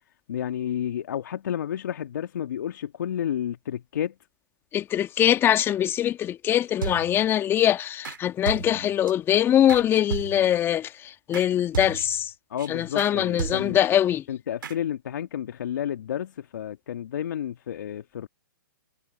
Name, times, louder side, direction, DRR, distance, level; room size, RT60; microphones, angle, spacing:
voice 1, 0.3-4.1 12.5-13.8 14.3-18.3, left 10 dB, 65° left, 1.9 m, -31 dB
voice 2, 4.7-12.3 12.7-14.2, left 11 dB, 20° left, 1.6 m, -23 dB
sound 1, 6.8-7.3 8.0-8.2 8.5-9.1 9.7-10.6 11.3-11.5 11.7-12.3 12.6-12.7 13.0-13.1 13.4-13.9 14.6-14.8, right 7 dB, 75° right, 2.4 m, -34 dB
hypercardioid pair, 130°, 11 cm